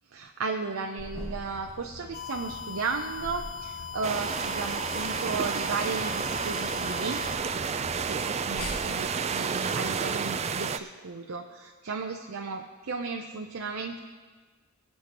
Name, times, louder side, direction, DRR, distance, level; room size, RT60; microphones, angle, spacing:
voice 1, 0.1-7.2 8.1-14.0, right 4 dB, 70° right, 3 dB, 0.6 m, -34 dB
sound 1, 1.0-9.1, left 1 dB, 80° left, 4.0 m, -43 dB
sound 2, 2.1-7.4, left 6 dB, 40° left, 1.0 m, -40 dB
sound 3, 4.0-10.8, right 6 dB, 30° right, 0.4 m, -30 dB
23.0 x 8.5 x 3.0 m, 1.5 s
head